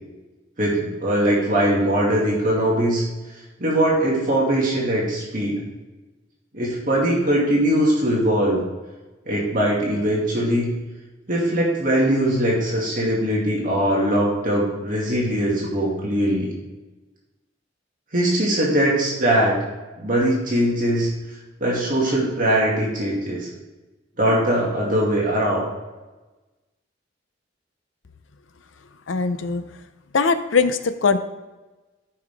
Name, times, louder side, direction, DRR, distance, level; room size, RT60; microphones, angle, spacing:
voice 1, 0.6-3.0 3.6-5.6 6.5-8.6 9.3-10.8 11.3-16.5 18.1-19.6 20.0-21.1 21.6-23.5 24.2-25.7, right 1 dB, 45° right, -4 dB, 2.3 m, -21 dB
voice 2, 29.1-29.6 30.1-31.2, left 4 dB, 85° left, 10 dB, 0.7 m, -20 dB
14.0 x 5.8 x 3.5 m, 1.2 s
head